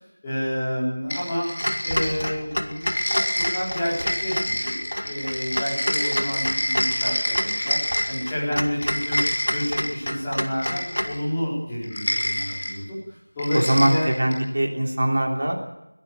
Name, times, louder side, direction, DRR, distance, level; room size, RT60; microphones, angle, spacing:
voice 1, 0.2-1.5 1.8-7.8 8.1-9.2 9.5-13.0 13.3-14.1, equal, 5° left, -11 dB, 4.8 m, -29 dB
sound 1, 1.1-2.4 2.7-8.3 8.7-10.0 10.5-11.2 11.8-12.7 13.4-14.4, left 1 dB, 30° left, 5.0 m, -28 dB
Clock, 1.6-11.2, equal, 80° left, 2.2 m, -30 dB
voice 2, 13.5-15.6, right 1 dB, 30° right, 1 dB, 3.2 m, -22 dB
22.5 x 16.5 x 7.1 m, 0.91 s
figure-of-eight pair, 175°, 0 cm